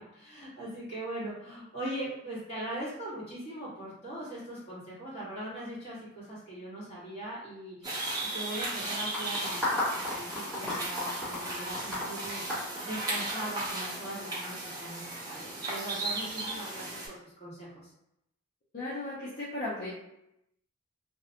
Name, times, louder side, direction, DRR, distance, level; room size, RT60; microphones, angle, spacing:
voice 1, 0.0-8.1 8.3-12.4 12.8-17.9, right 1 dB, 30° left, -9 dB, 1.3 m, -40 dB
sound 1, 7.8-17.1, right 2 dB, 20° right, 0.7 m, -36 dB
sound 2, 9.1-13.5, left 2 dB, ahead, 1.5 m, -33 dB
voice 2, 18.7-19.9, left 2 dB, 50° left, -8 dB, 0.6 m, -36 dB
2.5 x 2.1 x 2.7 m, 0.83 s
head